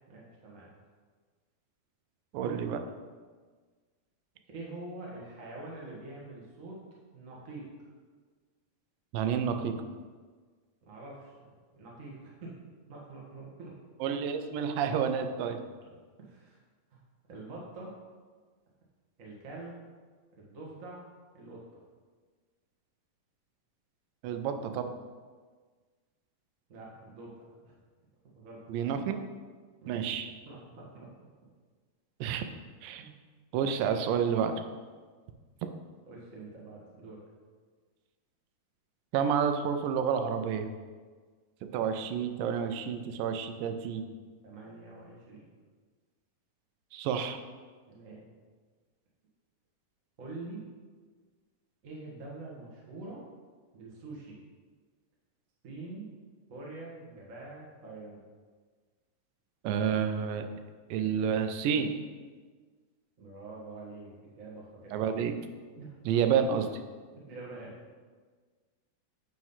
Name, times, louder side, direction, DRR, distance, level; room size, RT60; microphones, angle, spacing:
voice 1, 0.1-0.7 2.4-2.5 4.5-6.8 7.1-7.7 10.8-12.5 12.9-13.7 16.2-16.6 16.9-17.0 17.3-17.9 19.2-19.8 20.4-21.0 21.3-21.6 26.7-27.7 28.3-28.6 29.8-30.2 30.4-31.1 33.0-33.1 36.1-37.2 44.4-45.5 47.9-48.3 50.2-50.6 51.8-53.2 53.7-54.4 55.6-56.1 56.5-58.2 63.2-64.9 65.8-65.9 67.3-67.9, right 2 dB, 45° right, -4 dB, 1.0 m, -45 dB
voice 2, 2.3-2.8 9.1-9.8 14.0-15.6 24.2-24.9 28.7-29.2 29.9-30.3 32.2-32.4 32.8-33.1 33.5-34.5 39.1-40.7 41.7-44.1 46.9-47.4 59.6-60.5 60.9-61.9 64.9-65.3 66.1-66.7, right 7 dB, 90° right, 7 dB, 2.3 m, -29 dB
9.2 x 3.2 x 5.6 m, 1.5 s
omnidirectional pair, 3.9 m